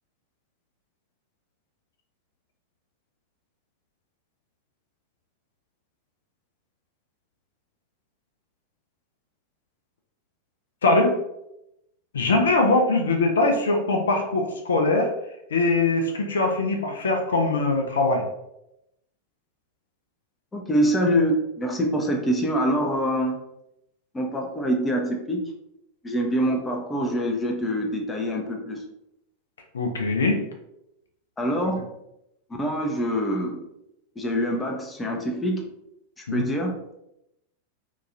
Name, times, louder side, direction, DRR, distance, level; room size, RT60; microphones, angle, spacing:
voice 1, 10.8-11.2 12.1-15.1 15.5-18.2 29.7-30.4 36.3-36.4, left 2 dB, 65° left, 2 dB, 0.4 m, -22 dB
voice 2, 20.5-23.4 24.1-25.4 26.0-28.8 31.4-31.9 32.5-33.6 34.2-35.7 36.2-36.8, equal, 15° left, 1 dB, 0.5 m, -25 dB
2.8 x 2.3 x 2.5 m, 0.84 s
figure-of-eight pair, 90°, 0 cm